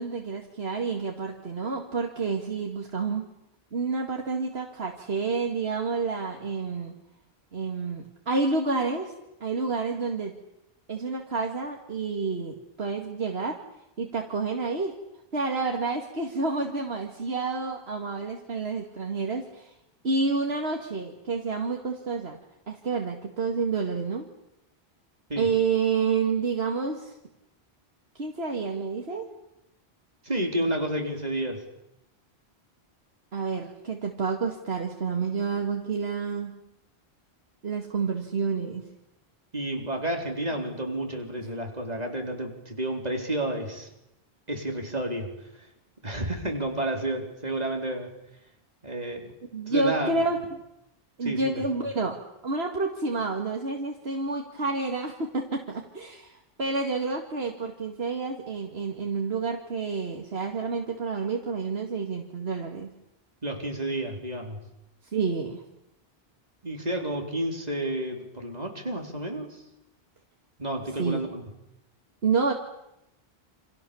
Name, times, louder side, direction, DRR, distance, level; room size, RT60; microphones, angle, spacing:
voice 1, 0.0-3.2 3.7-6.9 7.5-9.1 9.4-10.3 10.9-13.6 14.0-14.9 15.3-19.7 20.0-22.4 22.7-24.3 25.4-27.2 28.1-29.3 33.3-36.6 37.6-38.8 41.4-41.5 49.5-50.4 51.2-62.9 65.1-65.6 71.0-71.2 72.2-72.5, right 4 dB, 75° right, 2 dB, 2.5 m, -29 dB
voice 2, 30.2-31.7 39.5-43.9 44.5-45.3 46.0-48.1 48.8-49.3 49.7-50.2 51.2-51.6 63.4-64.6 66.6-69.6 70.6-71.4, right 1 dB, 40° right, 2 dB, 4.4 m, -30 dB
29.0 x 27.0 x 7.2 m, 0.86 s
omnidirectional pair, 1.1 m